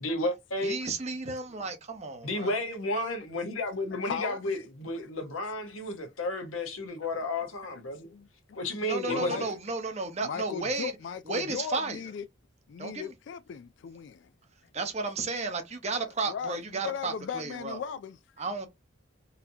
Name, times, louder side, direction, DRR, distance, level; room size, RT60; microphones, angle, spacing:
voice 1, 0.0-0.8 2.2-8.1 8.6-9.5, left 1 dB, 90° left, 1.1 m, -32 dB
voice 2, 0.6-2.5 8.8-10.9 11.3-12.0 12.8-13.1 14.7-17.8 18.4-18.7, right 3 dB, 35° right, 0.8 m, -33 dB
voice 3, 3.9-4.4 8.0-8.7 9.1-9.5 10.2-12.3 12.7-14.3 16.3-18.2, left 7 dB, 60° left, 0.3 m, -37 dB
4.1 x 2.8 x 2.7 m
head